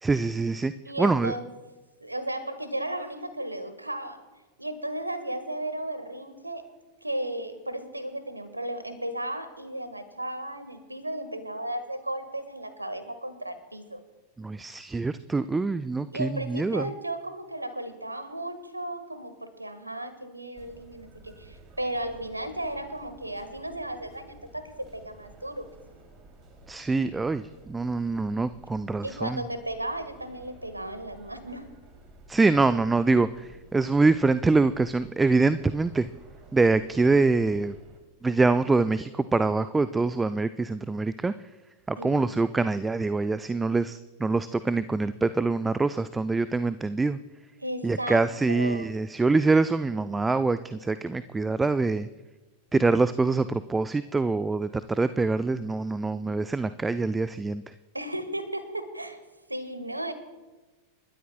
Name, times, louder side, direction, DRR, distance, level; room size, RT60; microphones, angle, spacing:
voice 1, 0.0-0.7 1.0-1.3 14.4-16.9 26.7-29.4 32.3-36.1 36.5-37.8 38.2-41.3 41.9-47.2 47.8-52.1 52.7-57.7, right 3 dB, 10° right, 14 dB, 0.3 m, -25 dB
voice 2, 0.8-1.5 2.0-4.2 4.6-6.6 7.0-14.0 16.1-25.7 29.0-31.7 42.0-42.4 47.6-48.2 48.5-48.9 57.9-59.2 59.5-60.1, right 1 dB, 85° right, 11 dB, 1.4 m, -35 dB
sound 1, 20.5-38.0, right 2 dB, 30° right, 2.7 m, -52 dB
30.0 x 12.5 x 2.2 m, 1.2 s
figure-of-eight pair, 90°, 0 cm